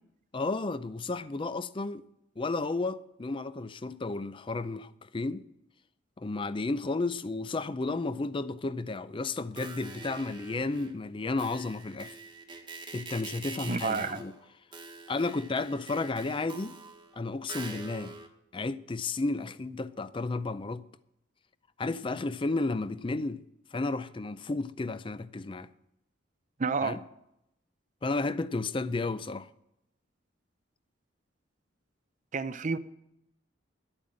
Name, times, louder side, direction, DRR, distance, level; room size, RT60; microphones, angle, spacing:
voice 1, 0.3-2.0 2.4-5.4 6.2-12.2 12.9-14.3 15.1-16.8 17.1-18.1 18.5-20.8 21.8-23.4 23.7-25.7 26.8-27.0 28.0-29.5, left 3 dB, 25° left, 0.4 m, -32 dB
sound 1, 9.3-11.0 11.4-18.3, right 4 dB, 25° right, 1.2 m, -45 dB
voice 2, 13.7-14.2 26.6-27.0 32.3-32.8, right 4 dB, 40° right, 0.5 m, -30 dB
11.0 x 8.9 x 7.5 m
head